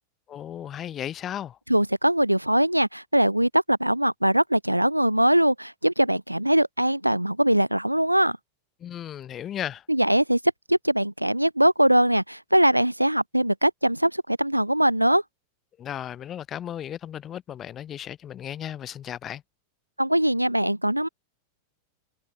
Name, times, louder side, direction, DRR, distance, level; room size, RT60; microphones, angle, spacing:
voice 1, 0.3-1.6 8.8-9.8 15.8-19.4, left 10 dB, 30° left, 2.6 m, -35 dB
voice 2, 1.7-8.4 9.9-10.4 10.7-15.2 20.0-21.1, right 1 dB, 90° right, 3.0 m, -21 dB
figure-of-eight pair, 90°, 0 cm